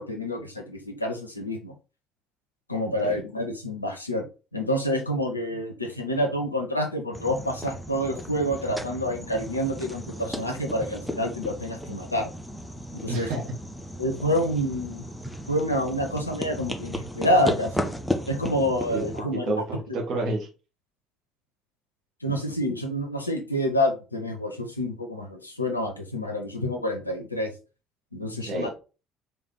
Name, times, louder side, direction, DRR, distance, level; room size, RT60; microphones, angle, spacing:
voice 1, 0.0-1.7 2.7-4.3 4.5-12.3 12.9-13.3 14.0-15.0 15.5-17.9 18.3-20.0 22.2-27.5 28.1-28.7, equal, 85° left, 0.4 m, -28 dB
sound 1, 7.1-19.2, equal, 5° left, 0.5 m, -35 dB
voice 2, 13.1-13.4 18.9-19.1 19.5-20.5 28.3-28.7, right 2 dB, 50° right, 0.9 m, -29 dB
3.3 x 2.1 x 3.7 m
figure-of-eight pair, 50°, 0 cm